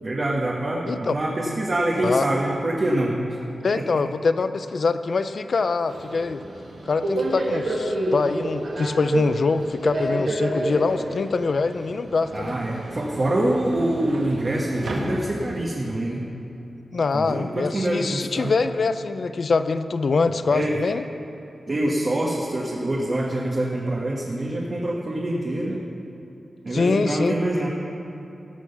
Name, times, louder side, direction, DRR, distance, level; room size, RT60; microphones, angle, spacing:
voice 1, 0.0-3.2 12.3-16.2 17.1-18.5 20.5-20.7 21.7-25.8 26.6-27.7, right 1 dB, 40° right, -3 dB, 1.3 m, -25 dB
voice 2, 3.6-6.4 6.9-12.6 16.9-21.0 26.7-27.4, left 4 dB, 60° left, 11 dB, 0.5 m, -24 dB
Subway metro underground, 5.9-15.6, right 1 dB, 80° right, 1.9 m, -30 dB
17.5 x 6.2 x 6.9 m, 2.8 s
wide cardioid pair, 115°, 0 cm